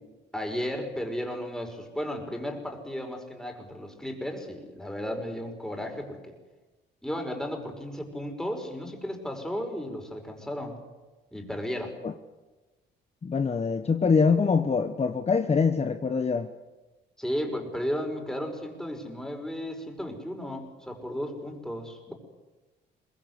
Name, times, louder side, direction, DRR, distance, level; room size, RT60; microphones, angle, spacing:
voice 1, 0.3-6.3 7.0-10.8 11.3-11.9 17.2-22.1, equal, 5° left, 3 dB, 5.6 m, -34 dB
voice 2, 13.2-16.5, left 5 dB, 30° left, 8 dB, 1.1 m, -24 dB
23.5 x 20.5 x 8.2 m, 1.2 s
cardioid pair, 90°, 20 cm